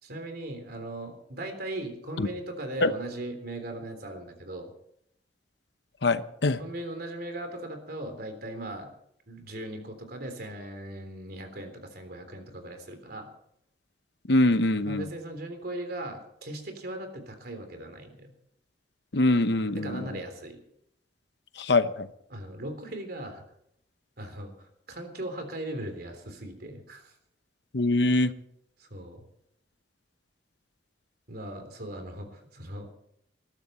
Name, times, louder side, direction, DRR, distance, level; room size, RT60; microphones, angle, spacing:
voice 1, 0.0-4.7 6.6-8.9 9.3-13.3 14.8-18.3 19.7-20.6 22.3-23.4 24.2-24.5 24.9-27.1 28.8-29.3 31.3-32.9, right 1 dB, 60° right, 6 dB, 3.4 m, -38 dB
voice 2, 6.0-6.6 14.3-15.1 19.1-20.1 21.6-22.1 27.7-28.3, left 2 dB, 70° left, 11 dB, 0.9 m, -23 dB
20.0 x 13.5 x 4.4 m, 0.73 s
head